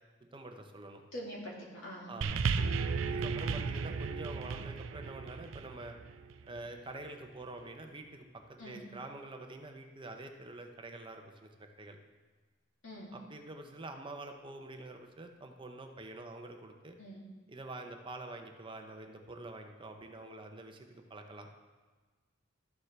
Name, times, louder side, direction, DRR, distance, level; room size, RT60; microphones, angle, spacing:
voice 1, 0.3-1.0 2.1-2.4 3.0-6.0 6.5-12.0 13.1-17.0 17.5-21.5, right 2 dB, 25° right, 4 dB, 0.7 m, -46 dB
voice 2, 1.1-2.1 8.6-8.8 12.8-13.1 17.0-17.2, equal, 85° left, -4 dB, 2.7 m, -44 dB
sound 1, 2.2-6.8 7.6-7.7, right 5 dB, 75° right, 0.4 m, -35 dB
13.0 x 7.0 x 3.3 m, 1.3 s
head